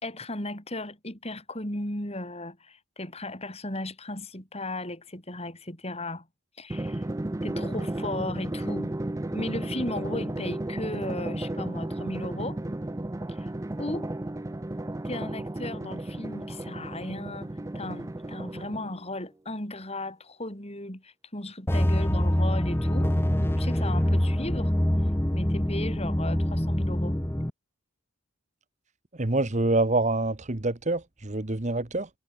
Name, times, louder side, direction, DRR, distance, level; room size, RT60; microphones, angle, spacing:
voice 1, 0.0-6.3 6.6-7.1 7.4-8.9 9.3-12.6 13.3-13.5 13.8-14.1 15.0-23.1 23.6-24.7 25.3-27.2, left 1 dB, 30° left, 6.0 m, -36 dB
Drum, 6.7-19.1, right 1 dB, 15° right, 0.4 m, -33 dB
sound 1, 21.7-27.5, equal, 10° left, 0.9 m, -25 dB
voice 2, 29.1-32.1, right 2 dB, 35° right, 1.2 m, -26 dB
head